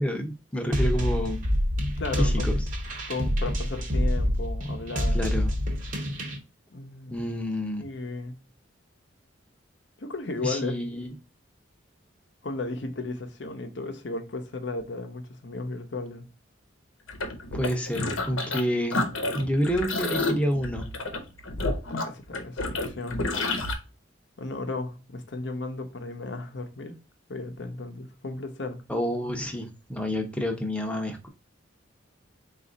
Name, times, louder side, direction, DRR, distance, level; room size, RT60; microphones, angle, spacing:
voice 1, 0.0-1.4 2.2-2.6 5.1-5.5 7.1-7.8 10.4-11.1 17.5-19.1 19.3-20.9 28.9-31.3, equal, 5° left, 0.7 m, -28 dB
sound 1, 0.7-6.4, equal, 40° right, 0.8 m, -27 dB
voice 2, 2.0-2.5 3.1-5.3 6.7-7.2 7.8-8.4 10.0-10.8 12.4-16.3 21.9-23.3 24.4-27.0 27.3-28.8, left 3 dB, 60° left, 0.8 m, -35 dB
sound 2, 17.1-18.6 18.9-23.7, left 2 dB, 90° left, 0.9 m, -29 dB
4.1 x 2.5 x 3.7 m
head